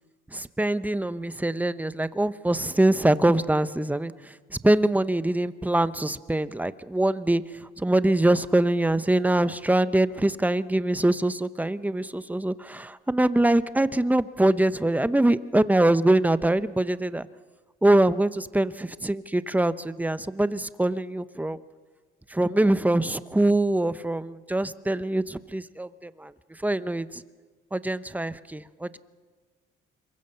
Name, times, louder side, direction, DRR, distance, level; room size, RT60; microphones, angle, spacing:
voice 1, 0.3-4.1 4.6-7.4 7.8-17.3 17.8-21.6 22.3-26.3 26.6-27.2 27.7-29.0, right 1 dB, 10° right, 14 dB, 0.8 m, -23 dB
26.5 x 23.0 x 6.9 m, 1.5 s
cardioid pair, 90°, 20 cm